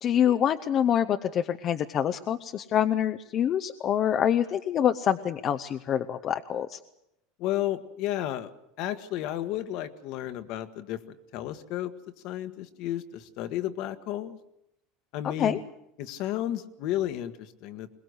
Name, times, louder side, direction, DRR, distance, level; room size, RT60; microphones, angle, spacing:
voice 1, 0.0-6.8 15.4-15.6, left 9 dB, 40° left, 8 dB, 0.7 m, -26 dB
voice 2, 7.4-8.5 8.8-11.9 12.2-14.4 15.1-15.6 16.0-18.0, left 13 dB, 60° left, 10 dB, 1.5 m, -32 dB
22.0 x 19.5 x 8.1 m, 0.83 s
supercardioid pair, 130°, 0 cm